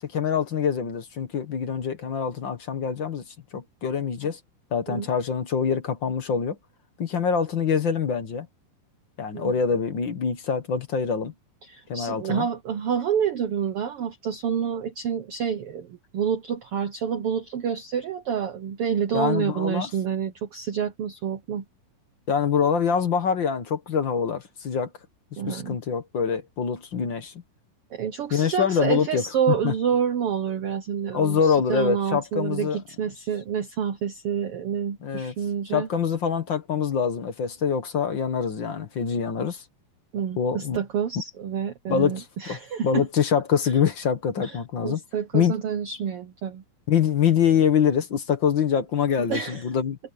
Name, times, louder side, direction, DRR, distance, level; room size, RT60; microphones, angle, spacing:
voice 1, 0.0-3.2 3.5-4.4 4.7-6.6 7.0-8.5 9.2-11.3 11.9-12.5 19.1-19.9 22.3-24.9 25.5-27.3 28.3-29.2 29.6-29.7 31.1-32.8 35.0-35.3 35.7-39.6 40.4-40.8 41.9-42.2 42.5-42.6 42.8-45.0 45.3-45.5 46.9-50.0, left 7 dB, 55° left, 1.4 m, -24 dB
voice 2, 11.6-21.6 25.4-25.8 27.9-35.9 40.1-43.1 44.4-46.6 49.3-49.7, right 8 dB, 85° right, 1.2 m, -28 dB
omnidirectional pair, 4.0 m